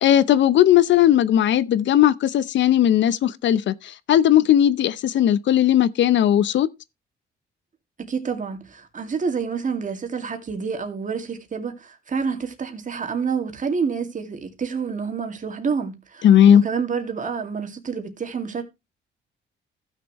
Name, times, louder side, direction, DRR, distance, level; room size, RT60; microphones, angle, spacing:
voice 1, 0.0-6.7 16.2-16.6, left 11 dB, 70° left, 0.7 m, -17 dB
voice 2, 8.0-18.6, right 5 dB, 40° right, 2.3 m, -28 dB
15.5 x 6.6 x 3.1 m
cardioid pair, 90°, 20 cm